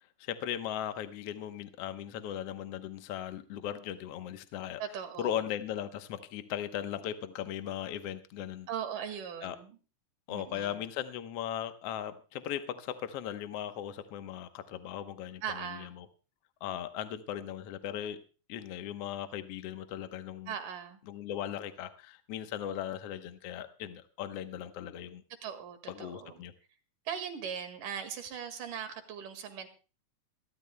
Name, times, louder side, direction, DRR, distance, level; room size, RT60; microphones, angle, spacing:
voice 1, 0.2-4.8 5.2-8.7 9.4-9.6 10.3-16.1 16.6-18.2 18.5-20.5 21.1-25.2 25.9-26.5, left 10 dB, 65° left, 9 dB, 1.7 m, -38 dB
voice 2, 4.8-5.5 8.7-9.8 10.3-10.9 15.4-15.9 20.5-21.0 25.4-26.4 27.1-29.7, right 8 dB, 85° right, 8 dB, 3.5 m, -39 dB
26.5 x 12.5 x 2.2 m, 0.34 s
omnidirectional pair, 3.6 m